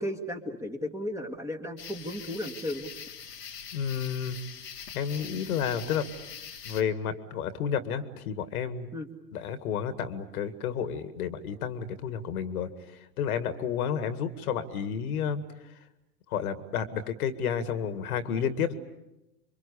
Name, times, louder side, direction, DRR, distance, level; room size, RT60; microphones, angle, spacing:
voice 1, 0.0-2.9 8.9-9.1, left 1 dB, 5° right, 4 dB, 2.2 m, -34 dB
sound 1, 1.8-6.8, left 7 dB, 85° left, 1.7 m, -43 dB
voice 2, 3.7-4.4 4.9-6.1 6.6-8.9 9.3-15.9 16.3-18.7, left 7 dB, 65° left, 12 dB, 2.0 m, -31 dB
28.0 x 24.0 x 8.5 m, 0.91 s
hypercardioid pair, 100°, 47 cm